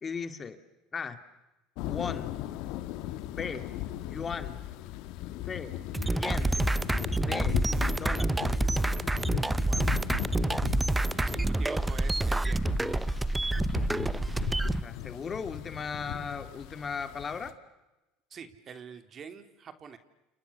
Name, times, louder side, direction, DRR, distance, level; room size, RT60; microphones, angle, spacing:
voice 1, 0.0-0.6 0.9-1.2 1.8-2.3 3.3-3.7 4.0-4.6 5.5-5.8 6.1-6.6 7.1-7.6 7.9-8.3 14.8-17.5, left 5 dB, 30° left, 10 dB, 2.5 m, -37 dB
sound 1, 1.8-17.5, left 13 dB, 70° left, 1.9 m, -37 dB
sound 2, 5.9-14.8, right 2 dB, 10° right, 0.9 m, -28 dB
voice 2, 9.7-10.0 11.1-12.7 18.3-20.0, right 6 dB, 40° right, 9 dB, 3.1 m, -45 dB
29.5 x 28.5 x 6.9 m, 1.0 s
supercardioid pair, 95°, 0 cm